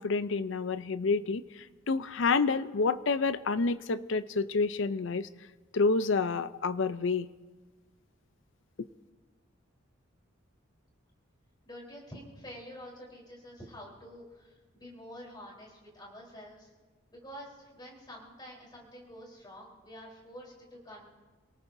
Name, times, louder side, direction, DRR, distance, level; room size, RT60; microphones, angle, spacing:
voice 1, 0.0-5.3 5.7-7.3 8.8-8.9, left 4 dB, 65° left, 14 dB, 0.5 m, -29 dB
voice 2, 11.7-16.7 17.1-21.1, equal, 20° left, -3 dB, 3.8 m, -48 dB
28.5 x 18.5 x 2.7 m, 1.3 s
head